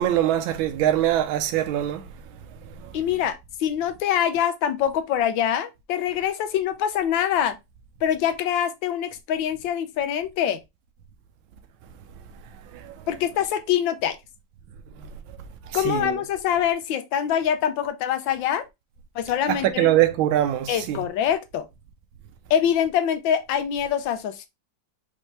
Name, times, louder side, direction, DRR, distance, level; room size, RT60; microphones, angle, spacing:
voice 1, 0.0-2.0 12.8-12.9 15.8-16.1 19.5-21.0, right 12 dB, 85° right, 1.5 m, -22 dB
voice 2, 2.9-7.6 8.0-10.6 13.1-14.2 15.7-18.7 19.1-19.9 20.7-21.6 22.5-24.5, left 9 dB, 75° left, 1.4 m, -24 dB
5.2 x 3.1 x 3.2 m
omnidirectional pair, 2.1 m